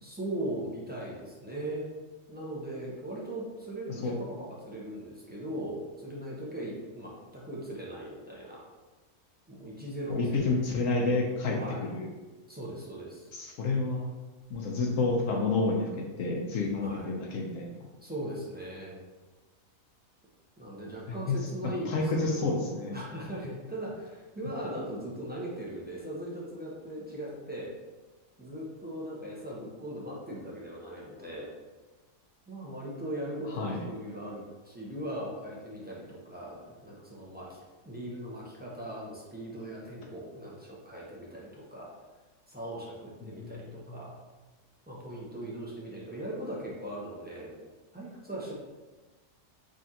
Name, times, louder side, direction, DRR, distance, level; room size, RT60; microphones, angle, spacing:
voice 1, 0.0-1.9 2.3-8.6 9.5-10.6 11.6-11.9 12.5-13.3 16.8-17.1 18.0-19.0 20.6-22.5 22.9-27.7 28.4-31.5 32.5-37.6 37.8-41.9 42.5-44.1 44.9-47.5 47.9-48.5, right 1 dB, 15° right, -6 dB, 0.4 m, -39 dB
voice 2, 10.1-12.1 13.3-14.1 14.5-15.9 16.2-17.7 21.1-21.4 21.6-23.0 33.5-33.9 43.2-43.5 43.9-44.0, left 3 dB, 70° left, 0 dB, 1.0 m, -29 dB
5.0 x 2.4 x 2.8 m, 1.2 s
omnidirectional pair, 1.4 m